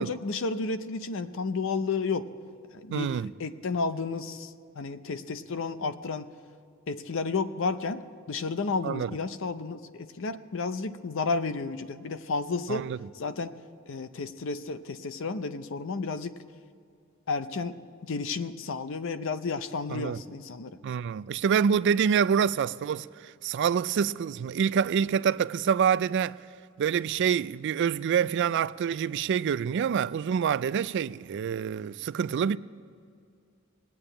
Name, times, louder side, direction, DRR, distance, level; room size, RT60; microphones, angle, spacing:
voice 1, 0.0-2.3 2.7-4.5 4.8-6.3 6.9-12.9 13.2-13.5 13.9-16.3 17.3-17.8 18.0-20.8, left 4 dB, 65° left, 0.6 m, -32 dB
voice 2, 2.9-3.3 8.8-9.2 12.7-13.0 19.9-20.2 20.8-26.4 26.8-32.6, right 7 dB, 55° right, 0.3 m, -26 dB
19.0 x 8.6 x 8.8 m
head